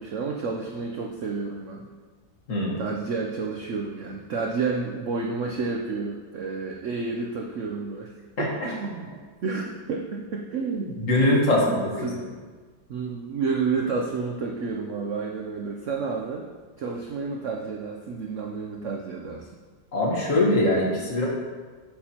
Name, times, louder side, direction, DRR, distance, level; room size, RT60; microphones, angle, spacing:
voice 1, 0.0-1.8 2.8-8.1 8.4-11.0 11.4-12.2 12.9-16.5 16.8-19.5, right 4 dB, 75° right, 0 dB, 0.7 m, -30 dB
voice 2, 2.5-2.8 8.4-8.5 9.5-9.6 11.0-12.1 19.9-21.3, left 1 dB, 45° left, -3 dB, 1.6 m, -22 dB
8.6 x 7.4 x 2.9 m, 1.5 s
omnidirectional pair, 2.0 m